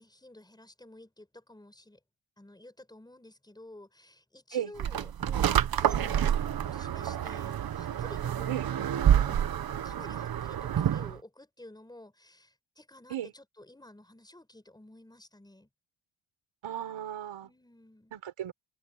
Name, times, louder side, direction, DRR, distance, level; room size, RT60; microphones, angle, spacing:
voice 1, 0.0-2.0 2.4-8.7 9.1-9.4 9.8-15.7 17.4-18.1, left 1 dB, 10° left, 6.3 m, -52 dB
sound 1, 4.8-11.2, right 10 dB, 50° right, 0.9 m, -28 dB
voice 2, 16.6-17.5 18.1-18.5, right 10 dB, 85° right, 5.3 m, -35 dB
wide cardioid pair, 175°, 48 cm